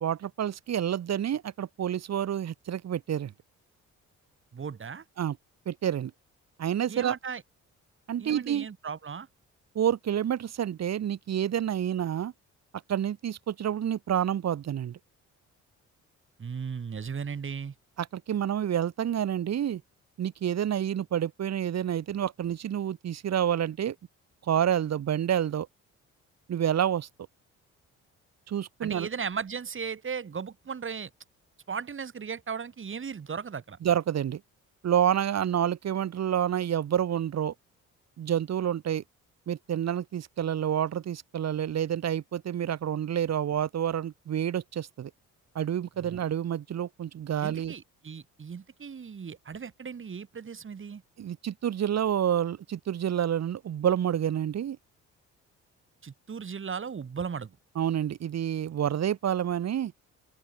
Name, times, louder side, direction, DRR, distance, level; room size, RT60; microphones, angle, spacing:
voice 1, 0.0-3.3 5.2-5.4 5.7-6.1 6.6-7.2 8.1-8.7 9.7-12.3 12.9-15.0 18.0-19.8 20.2-24.0 24.5-25.7 26.5-27.1 28.5-29.1 33.8-34.4 34.8-37.5 38.2-39.0 39.5-45.1 45.5-47.7 51.2-54.8 57.8-59.9, right 10 dB, 60° right, 2.3 m, -28 dB
voice 2, 4.5-5.0 6.9-7.4 8.2-9.3 16.4-17.7 28.8-31.1 31.7-33.8 46.0-46.2 47.4-51.0 56.0-57.6, right 6 dB, 40° right, 5.4 m, -36 dB
open air
cardioid pair, 90°, 30 cm